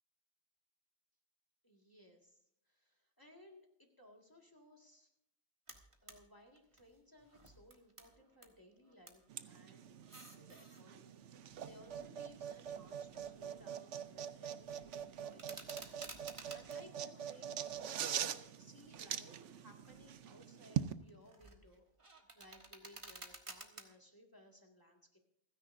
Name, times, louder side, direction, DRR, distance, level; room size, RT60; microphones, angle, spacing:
voice 1, 1.6-5.1 6.0-9.8 10.4-21.8 22.3-25.2, equal, 15° left, 0 dB, 2.0 m, -62 dB
sound 1, 5.7-6.2 6.6-8.5 8.8-9.3 9.9-10.8 11.5-13.6 13.9-14.3 14.6-16.8 17.3-18.2 18.8-19.0 19.6-20.1 20.5-23.8, right 2 dB, 25° right, 1.5 m, -55 dB
sound 2, 9.3-20.9, right 9 dB, 80° right, 1.1 m, -43 dB
29.0 x 10.0 x 2.6 m, 0.76 s
omnidirectional pair, 1.2 m